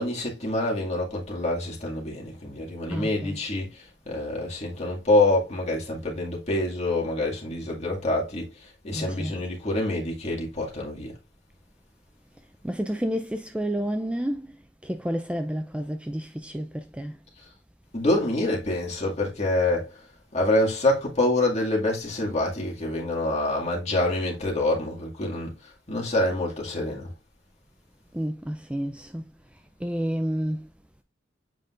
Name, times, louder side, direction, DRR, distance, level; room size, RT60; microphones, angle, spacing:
voice 1, 0.0-11.1 17.9-20.0 20.3-25.5 25.9-27.1, left 1 dB, 35° left, 2.0 m, -26 dB
voice 2, 2.9-3.4 8.9-9.4 12.6-14.6 14.8-17.2 28.1-29.2 29.8-30.7, equal, 5° right, 0.4 m, -30 dB
7.6 x 5.3 x 2.5 m
head